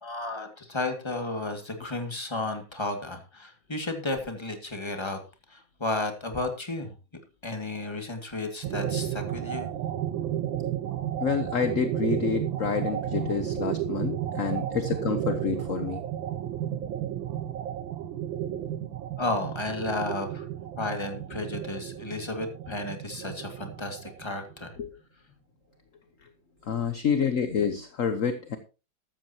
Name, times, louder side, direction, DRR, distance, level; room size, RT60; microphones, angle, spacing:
voice 1, 0.0-5.2 5.5-6.9 7.4-9.7 19.2-20.5 20.8-24.7, left 2 dB, 15° left, 5 dB, 2.1 m, -33 dB
sound 1, 8.6-24.7, right 11 dB, 85° right, 1.6 m, -33 dB
voice 2, 11.2-16.0 24.8-24.9 26.6-28.6, left 6 dB, 50° left, 9 dB, 1.2 m, -28 dB
14.5 x 13.0 x 2.9 m, 0.31 s
omnidirectional pair, 2.1 m